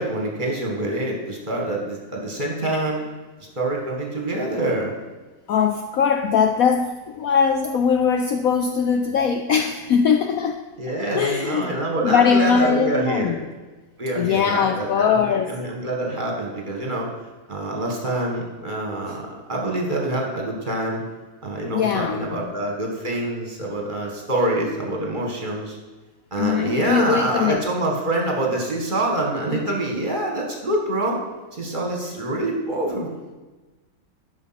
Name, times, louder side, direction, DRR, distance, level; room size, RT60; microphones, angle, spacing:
voice 1, 0.0-3.0 3.6-4.9 10.8-13.3 14.0-17.1 17.5-21.0 21.4-25.8 26.3-31.2 31.5-33.3, right 1 dB, 25° right, -1 dB, 1.8 m, -26 dB
voice 2, 5.5-10.6 11.2-11.7 12.0-13.4 14.2-15.5 21.7-22.5 26.4-27.6, left 6 dB, 80° left, 6 dB, 0.7 m, -21 dB
12.5 x 5.7 x 5.9 m, 1.2 s
omnidirectional pair, 2.1 m